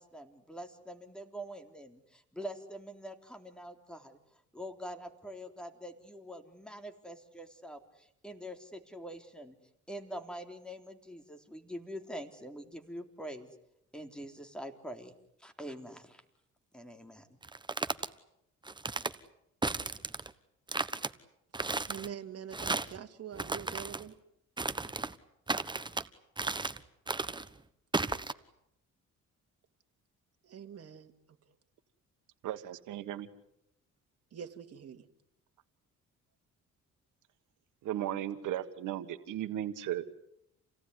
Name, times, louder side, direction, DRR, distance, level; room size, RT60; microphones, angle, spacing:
voice 1, 0.0-4.2 4.5-9.6 9.9-13.5 13.9-15.1 15.4-16.2 16.7-17.3, equal, 5° left, 5 dB, 3.7 m, -45 dB
sound 1, 17.4-18.1 18.7-19.1 19.6-20.3 20.7-21.1 21.5-22.1 22.5-23.0 23.3-24.0 24.6-25.1 25.5-26.1 26.4-26.8 27.1-27.5 27.9-28.3, right 3 dB, 15° right, 1.2 m, -34 dB
voice 2, 21.8-24.1 30.4-31.1 34.3-35.1, right 8 dB, 55° right, 6 dB, 2.7 m, -44 dB
voice 3, 32.4-33.3 37.8-40.0, right 12 dB, 85° right, 10 dB, 1.6 m, -36 dB
28.5 x 18.0 x 9.7 m, 0.80 s
cardioid pair, 90°, 30 cm